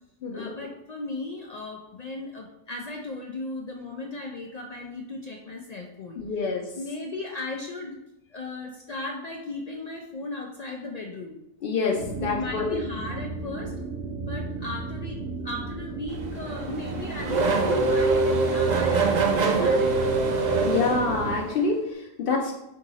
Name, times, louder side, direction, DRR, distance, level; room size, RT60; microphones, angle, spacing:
voice 1, 0.3-6.2 6.8-8.0 8.3-11.4 12.2-13.7 14.2-20.2, left 2 dB, 80° left, 1 dB, 0.3 m, -36 dB
voice 2, 6.2-6.6 11.6-12.8 20.6-22.5, left 4 dB, 60° left, -1 dB, 0.7 m, -26 dB
sound 1, 11.9-21.4, right 3 dB, 90° right, 1.8 m, -34 dB
Race car auto racing / Accelerating revving vroom, 16.1-21.7, right 3 dB, 50° right, 0.5 m, -24 dB
4.6 x 2.7 x 3.9 m, 0.89 s
omnidirectional pair, 1.2 m